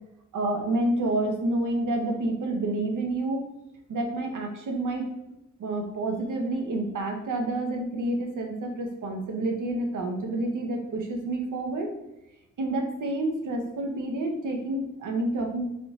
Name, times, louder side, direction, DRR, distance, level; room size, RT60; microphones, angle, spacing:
voice 1, 0.3-3.4 3.9-5.1 5.6-11.9 12.6-15.7, right 2 dB, 90° right, 2 dB, 0.7 m, -29 dB
3.9 x 3.6 x 2.4 m, 0.89 s
wide cardioid pair, 160°, 30 cm